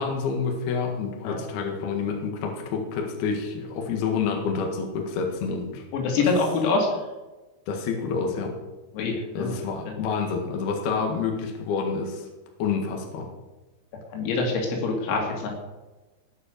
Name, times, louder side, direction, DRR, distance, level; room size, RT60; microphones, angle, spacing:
voice 1, 0.0-5.8 7.7-8.5 9.3-12.3 12.6-13.3, left 5 dB, 60° left, 3 dB, 3.2 m, -28 dB
voice 2, 5.9-6.9 8.9-9.6 14.1-15.5, left 3 dB, 90° left, 0 dB, 5.5 m, -25 dB
18.5 x 6.7 x 6.6 m, 1.1 s
omnidirectional pair, 6.0 m